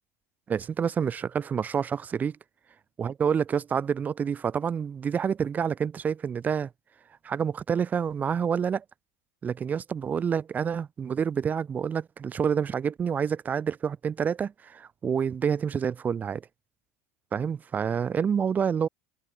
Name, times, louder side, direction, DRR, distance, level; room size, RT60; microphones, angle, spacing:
voice 1, 0.5-2.4 3.0-6.7 7.2-8.8 9.4-16.4 17.3-18.9, right 7 dB, 20° right, 2.2 m, -28 dB
supercardioid pair, 150°, 7 cm